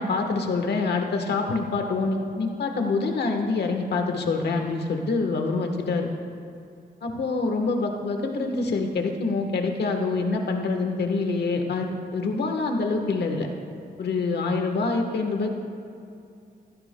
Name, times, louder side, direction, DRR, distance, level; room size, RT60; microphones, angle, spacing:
voice 1, 0.0-6.1 7.0-13.5 14.0-15.5, left 3 dB, 90° left, 3 dB, 1.2 m, -26 dB
17.0 x 15.5 x 2.2 m, 2.5 s
wide cardioid pair, 135°, 17 cm